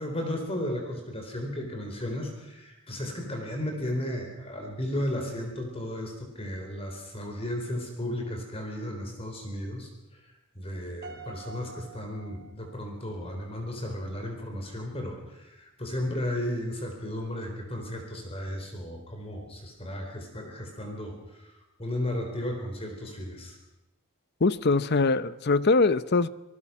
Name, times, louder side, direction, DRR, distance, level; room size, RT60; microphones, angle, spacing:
voice 1, 0.0-10.2 10.6-21.5 21.8-23.6, left 1 dB, 25° left, 3 dB, 4.0 m, -34 dB
Piano, 11.0-13.3, right 3 dB, 50° right, 2.8 m, -46 dB
voice 2, 24.4-26.3, left 3 dB, 50° left, 16 dB, 0.7 m, -22 dB
26.5 x 19.0 x 6.0 m, 0.96 s
head